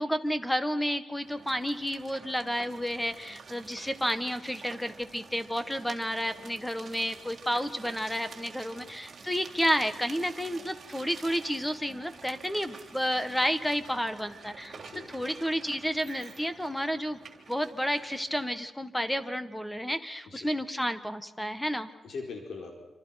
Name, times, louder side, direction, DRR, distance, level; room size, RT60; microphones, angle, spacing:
voice 1, 0.0-14.8 15.1-17.2 17.5-21.9, equal, 5° left, 10 dB, 1.6 m, -31 dB
sound 1, 1.2-18.5, right 5 dB, 45° right, 3.5 m, -49 dB
voice 2, 14.7-15.3 20.3-20.5 22.0-22.8, left 4 dB, 70° left, 1 dB, 4.7 m, -42 dB
27.5 x 26.5 x 6.0 m, 1.0 s
wide cardioid pair, 125°, 0 cm